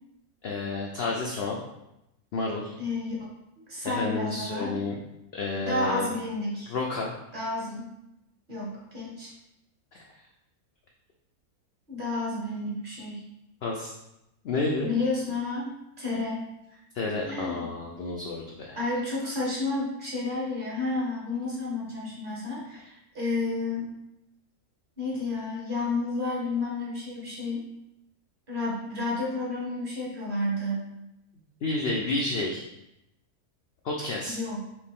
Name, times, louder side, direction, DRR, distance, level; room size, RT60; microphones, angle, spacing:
voice 1, 0.4-1.6 2.3-2.7 3.8-5.0 5.3-6.1 6.7-7.1 13.6-13.9 14.4-14.9 16.9-18.8 31.6-32.6 33.8-34.4, left 3 dB, 70° left, -1 dB, 0.5 m, -30 dB
voice 2, 2.8-3.3 3.6-4.8 5.6-6.7 7.3-7.9 8.5-9.3 11.9-13.2 14.8-15.7 16.0-16.8 17.3-17.7 18.8-23.9 25.0-27.7 28.5-30.8 34.3-34.6, left 2 dB, 35° right, -5 dB, 1.2 m, -31 dB
4.4 x 2.7 x 3.6 m, 0.87 s
omnidirectional pair, 1.6 m